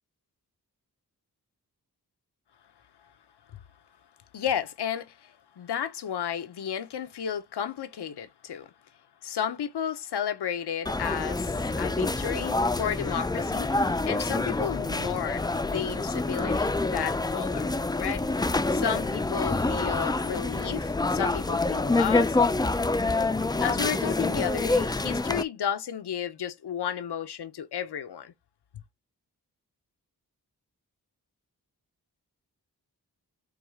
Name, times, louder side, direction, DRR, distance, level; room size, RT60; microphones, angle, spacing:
voice 1, 4.3-8.7 9.2-18.2 18.7-22.4 23.6-28.3, left 9 dB, 85° left, 0.7 m, -33 dB
sound 1, 10.9-25.4, left 2 dB, 10° left, 0.3 m, -27 dB
4.7 x 2.3 x 3.5 m
cardioid pair, 50°, 39 cm